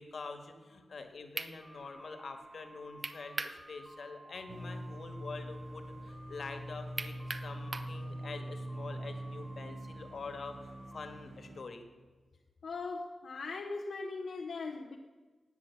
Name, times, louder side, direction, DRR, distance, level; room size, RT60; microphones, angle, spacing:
voice 1, 0.0-11.8, left 4 dB, 65° left, 7 dB, 1.7 m, -46 dB
sound 1, 0.9-1.0 1.4-1.5 3.0-3.6 4.0-4.1 7.0-7.9, right 3 dB, 40° right, 0.8 m, -38 dB
sound 2, 1.6-11.2, right 1 dB, 10° right, 2.6 m, -54 dB
sound 3, 4.5-11.6, right 1 dB, 80° right, 2.1 m, -43 dB
voice 2, 12.6-15.0, left 3 dB, 80° left, 1 dB, 0.9 m, -39 dB
16.5 x 9.4 x 7.1 m, 1.3 s
wide cardioid pair, 120°, 0 cm